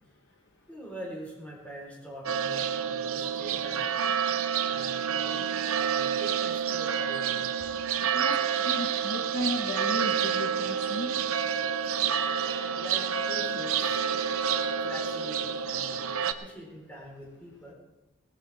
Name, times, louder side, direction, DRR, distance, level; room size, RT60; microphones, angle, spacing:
voice 1, 0.7-4.0 4.6-7.5 12.8-14.0 14.8-17.7, equal, 5° left, -3 dB, 4.1 m, -44 dB
sound 1, 2.3-16.3, right 7 dB, 65° right, 0.7 m, -28 dB
voice 2, 8.1-11.1 12.4-12.6 14.1-14.3, left 1 dB, 55° left, 3 dB, 1.3 m, -35 dB
18.5 x 14.5 x 3.6 m, 0.99 s
head